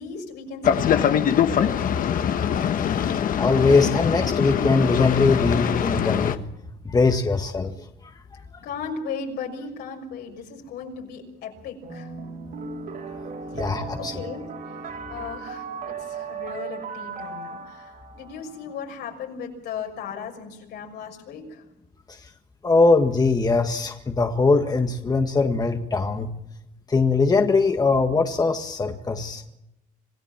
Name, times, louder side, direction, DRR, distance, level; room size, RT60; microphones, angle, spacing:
voice 1, 0.0-2.0 8.6-12.1 13.5-13.7 14.0-14.5 15.1-21.6, left 5 dB, 80° left, 2 dB, 6.3 m, -36 dB
Boat Water vehicle, 0.6-6.4, left 8 dB, 55° left, 1.5 m, -23 dB
voice 2, 3.4-6.4 6.9-7.7 13.6-14.1 22.1-22.2 22.6-26.4 26.9-29.4, left 3 dB, 20° left, 5 dB, 1.7 m, -21 dB
sound 1, 11.8-18.8, right 5 dB, 65° right, 6.2 m, -36 dB
27.0 x 16.0 x 7.4 m, 0.86 s
cardioid pair, 110°, 17 cm